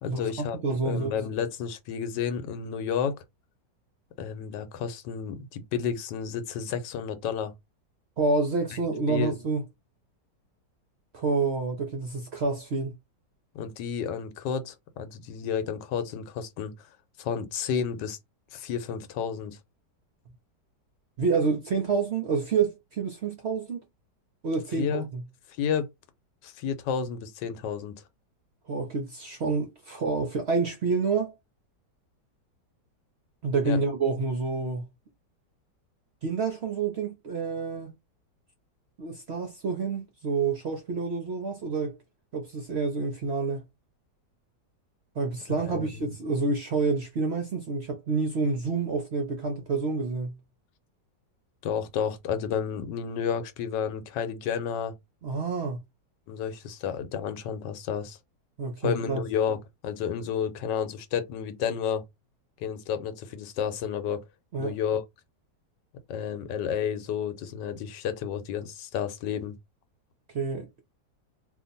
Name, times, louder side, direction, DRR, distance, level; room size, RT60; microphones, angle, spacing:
voice 1, 0.0-0.6 0.8-3.2 4.2-7.5 8.7-8.8 9.1-9.3 13.5-16.9 17.2-18.2 18.5-19.6 24.8-25.1 25.6-25.9 26.4-28.0 33.6-33.8 45.6-46.1 51.6-54.9 56.3-58.2 58.8-62.1 62.6-64.2 64.6-65.0 66.1-69.5, left 7 dB, 85° left, 1.3 m, -31 dB
voice 2, 0.6-1.1 8.2-9.6 11.1-12.9 21.2-23.8 24.4-25.2 28.7-31.3 33.4-34.9 36.2-37.9 39.0-42.0 42.3-43.6 45.2-50.4 55.2-55.8 58.6-59.2 64.5-64.8 70.3-70.7, right 4 dB, 60° right, 0.7 m, -28 dB
2.8 x 2.5 x 3.9 m
omnidirectional pair, 1.9 m